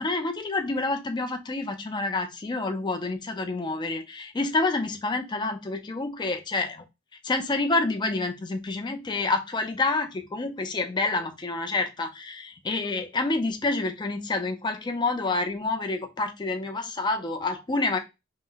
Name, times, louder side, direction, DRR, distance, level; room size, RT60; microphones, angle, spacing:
voice 1, 0.0-6.8 7.2-18.0, left 3 dB, 20° left, 5 dB, 0.4 m, -28 dB
4.0 x 2.1 x 3.7 m, 0.24 s
head